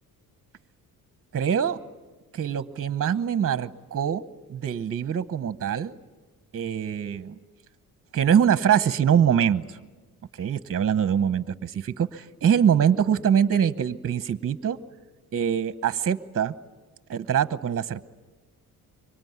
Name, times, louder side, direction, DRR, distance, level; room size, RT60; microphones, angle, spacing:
voice 1, 1.3-1.8 2.3-4.2 4.5-6.0 6.5-7.3 8.1-9.8 10.3-14.8 15.3-16.5 17.1-18.0, right 8 dB, 40° right, 14 dB, 1.0 m, -23 dB
25.5 x 24.0 x 9.5 m, 1.3 s
cardioid pair, 100°, 36 cm